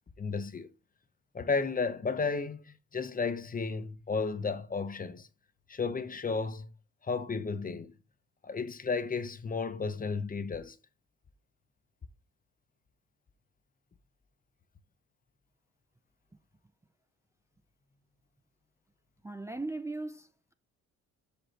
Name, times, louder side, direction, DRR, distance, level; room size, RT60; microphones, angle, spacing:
voice 1, 0.2-0.7 1.3-5.3 5.7-6.7 7.0-7.9 8.4-10.8, left 4 dB, 30° left, 0.7 m, -33 dB
voice 2, 19.2-20.5, right 2 dB, 10° right, 0.5 m, -38 dB
6.1 x 5.2 x 4.2 m
cardioid pair, 90°, 30 cm